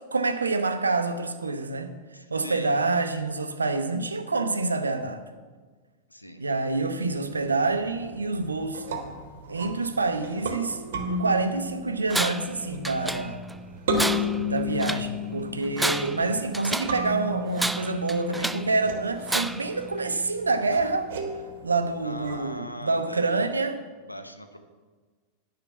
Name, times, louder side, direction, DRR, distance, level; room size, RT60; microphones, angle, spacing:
voice 1, 0.1-2.0 2.3-5.2 6.4-8.8 9.5-10.8 11.1-13.4 14.4-21.1 21.6-23.8, right 3 dB, 75° right, 9 dB, 0.8 m, -27 dB
voice 2, 2.1-2.8 6.1-6.4 14.2-14.3 22.0-23.6 24.0-24.6, equal, 90° left, 7 dB, 0.8 m, -40 dB
sound 1, 7.0-22.6, left 1 dB, 60° right, 1.4 m, -34 dB
Tools, 12.1-12.6 12.9-13.6 13.9-15.1 15.6-17.0 17.6-18.7 19.3-19.8, right 1 dB, 5° right, 0.3 m, -30 dB
9.8 x 5.7 x 8.3 m, 1.5 s
figure-of-eight pair, 90°, 0 cm